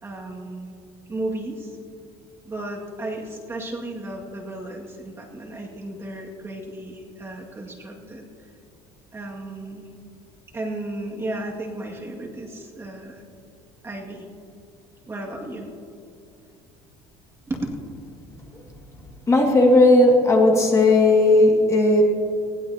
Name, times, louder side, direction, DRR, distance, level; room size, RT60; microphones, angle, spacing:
voice 1, 0.0-0.7 1.1-1.8 2.4-8.3 9.1-9.8 10.5-13.2 13.8-14.3 15.1-15.7 17.5-17.7 20.0-20.1, right 2 dB, 20° right, -2 dB, 2.1 m, -34 dB
voice 2, 19.3-22.0, left 2 dB, 25° left, 0 dB, 2.1 m, -15 dB
20.5 x 16.0 x 2.9 m, 2.5 s
cardioid pair, 125°, 13 cm